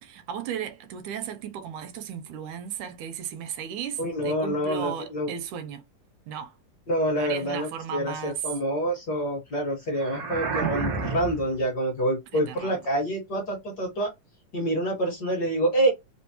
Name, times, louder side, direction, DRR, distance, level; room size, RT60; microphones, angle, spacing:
voice 1, 0.0-5.8 6.3-6.5 7.1-8.4 12.3-12.8, right 8 dB, 80° right, 2.1 m, -35 dB
voice 2, 4.0-5.3 6.9-14.1 14.5-15.9, right 1 dB, 55° left, 1.2 m, -27 dB
sound 1, 9.9-11.6, right 4 dB, 60° right, 0.9 m, -30 dB
5.0 x 2.0 x 2.8 m
omnidirectional pair, 3.5 m